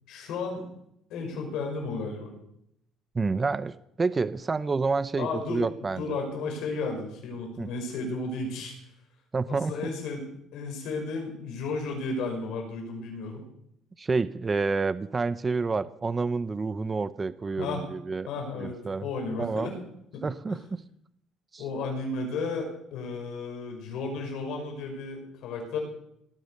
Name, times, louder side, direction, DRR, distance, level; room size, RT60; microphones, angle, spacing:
voice 1, 0.1-0.6 1.1-2.3 5.2-5.6 6.0-8.7 9.5-10.2 10.5-13.5 17.6-17.9 18.3-19.7 20.1-20.2 20.5-20.7 21.6-25.8, left 3 dB, 75° left, 2 dB, 5.9 m, -33 dB
voice 2, 3.1-6.2 7.6-7.7 9.3-9.7 14.0-18.3 18.6-19.0 19.4-19.7 20.2-20.8 21.5-21.6, right 4 dB, 25° right, 15 dB, 0.7 m, -29 dB
19.0 x 9.3 x 6.7 m, 0.76 s
cardioid pair, 95°, 0 cm